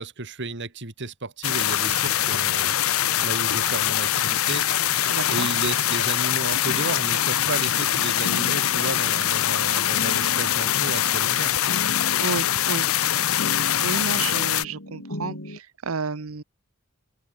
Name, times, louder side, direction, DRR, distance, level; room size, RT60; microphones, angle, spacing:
voice 1, 0.0-2.7 3.2-4.7 5.3-11.8, right 3 dB, 60° right, 2.4 m, -33 dB
sound 1, 1.4-14.6, left 12 dB, 85° left, 0.7 m, -23 dB
voice 2, 5.1-5.5 12.2-12.9 13.8-16.4, right 4 dB, 80° right, 0.9 m, -31 dB
sound 2, 6.7-15.6, left 1 dB, 65° left, 5.4 m, -37 dB
open air
head